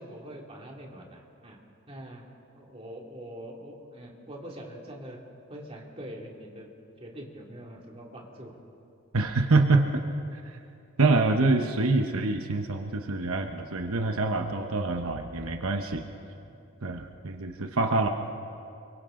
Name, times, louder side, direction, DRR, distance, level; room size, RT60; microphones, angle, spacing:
voice 1, 0.0-1.6 1.9-2.2 2.5-5.2 5.5-6.7 7.0-8.6 13.0-13.2 16.5-16.6, right 1 dB, 25° right, -1 dB, 2.5 m, -43 dB
voice 2, 9.1-10.0 11.0-16.0 16.8-18.1, right 3 dB, 80° right, 4 dB, 1.1 m, -25 dB
29.5 x 23.5 x 3.8 m, 2.6 s
head